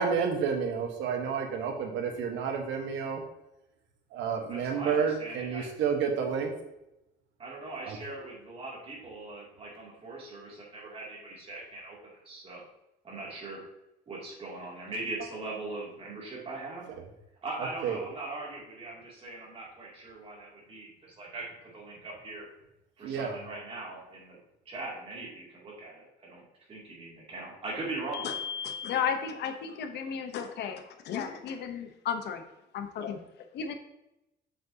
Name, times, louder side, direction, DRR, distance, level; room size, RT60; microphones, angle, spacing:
voice 1, 0.0-3.2 4.1-6.5 7.9-8.0 17.8-18.0 23.0-23.4, right 6 dB, 80° right, 4 dB, 1.3 m, -30 dB
voice 2, 4.5-5.7 7.4-12.6 13.0-13.6 14.1-16.9 17.4-22.5 23.0-24.4 24.7-26.4 26.7-28.4, right 2 dB, 30° right, -4 dB, 2.7 m, -40 dB
voice 3, 28.1-32.4 32.7-33.2 33.5-33.7, left 7 dB, 65° left, 7 dB, 0.9 m, -34 dB
7.6 x 7.1 x 2.8 m, 0.90 s
cardioid pair, 155°, 19 cm